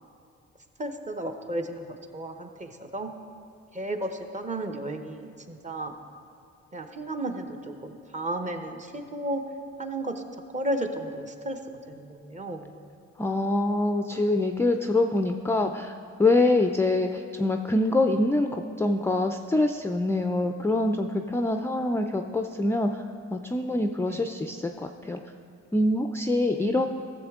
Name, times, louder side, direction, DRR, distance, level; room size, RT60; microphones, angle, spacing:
voice 1, 0.8-3.1 3.7-5.9 6.7-9.4 9.8-10.2 10.5-11.6 11.9-12.7 24.1-24.3 26.5-26.8, right 1 dB, 25° right, 5 dB, 0.8 m, -33 dB
voice 2, 13.2-23.0 23.3-25.2 25.7-26.9, left 2 dB, 10° left, 5 dB, 0.3 m, -25 dB
14.0 x 6.9 x 3.6 m, 2.6 s
cardioid pair, 90°, 30 cm